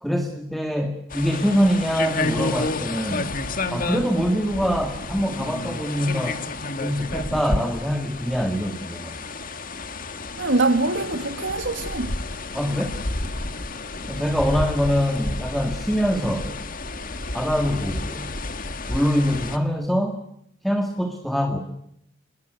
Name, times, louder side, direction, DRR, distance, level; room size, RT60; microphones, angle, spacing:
voice 1, 0.0-3.3 3.7-6.4 6.8-9.2 12.5-13.0 14.1-16.5 17.3-18.3 18.9-20.2 20.6-21.6, equal, ahead, 2.0 m, -24 dB
sound 1, 1.1-19.6, left 2 dB, 45° left, 1.9 m, -31 dB
voice 2, 10.4-12.1, right 2 dB, 65° right, 2.0 m, -23 dB
28.5 x 21.5 x 8.1 m
head